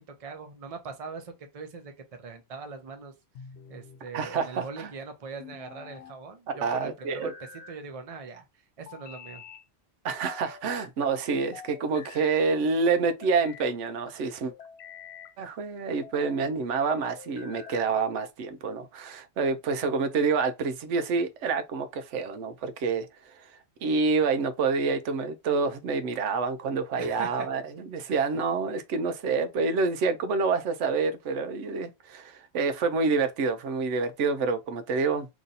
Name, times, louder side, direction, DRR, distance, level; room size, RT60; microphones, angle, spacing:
voice 1, 0.2-1.9 2.2-3.1 3.7-7.3 7.7-8.5 8.8-9.4 27.0-27.5, right 4 dB, 35° right, 0.6 m, -41 dB
sound 1, 3.4-4.0 5.4-6.2 7.0-7.8 8.9-9.7 10.2-10.9 11.5-12.4 13.0-13.7 14.4-15.4 15.9-16.4 17.2-18.0, left 7 dB, 70° left, 0.8 m, -47 dB
voice 2, 4.1-4.9 6.6-7.3 10.0-14.5 15.4-23.1 23.8-35.3, right 4 dB, 85° right, 0.9 m, -27 dB
3.0 x 2.7 x 3.9 m
omnidirectional pair, 1.2 m